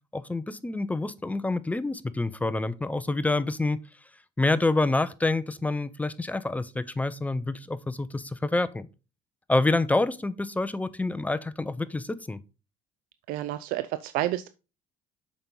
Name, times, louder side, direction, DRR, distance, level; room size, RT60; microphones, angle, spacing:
voice 1, 0.1-3.8 4.4-8.9 9.5-12.4, left 2 dB, 10° left, 0.5 m, -27 dB
voice 2, 13.3-14.5, right 14 dB, 75° right, 0.5 m, -30 dB
7.0 x 5.3 x 3.8 m
cardioid pair, 105°, 15 cm